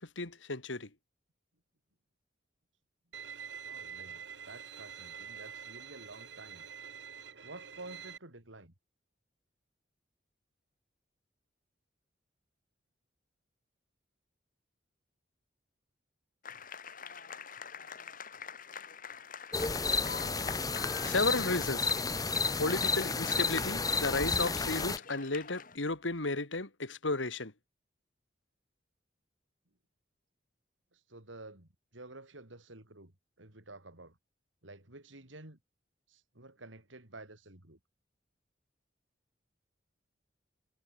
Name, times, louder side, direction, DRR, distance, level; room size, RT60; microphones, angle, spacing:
voice 1, 0.2-0.9 21.0-21.9 22.6-27.5, left 3 dB, 85° left, 2.5 m, -33 dB
Bowed string instrument, 3.1-8.2, right 7 dB, 65° right, 1.8 m, -46 dB
voice 2, 3.6-6.7 7.4-8.7 18.7-18.8 30.9-34.2 34.6-35.6 36.1-37.8, right 2 dB, 90° right, 4.1 m, -51 dB
sound 1, 16.4-25.8, left 6 dB, 45° left, 4.0 m, -45 dB
sound 2, 19.5-25.0, left 4 dB, 20° left, 1.6 m, -31 dB
head